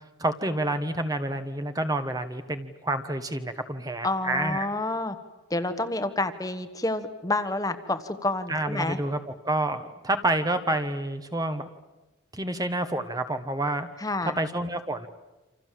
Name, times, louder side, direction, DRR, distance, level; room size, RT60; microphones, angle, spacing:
voice 1, 0.2-4.7 8.5-11.7 12.3-13.9 14.4-15.1, right 1 dB, 15° right, 8 dB, 1.2 m, -28 dB
voice 2, 4.0-5.2 5.5-9.0 14.0-14.3, left 2 dB, 15° left, 9 dB, 1.3 m, -29 dB
28.0 x 27.0 x 7.6 m, 1.1 s
head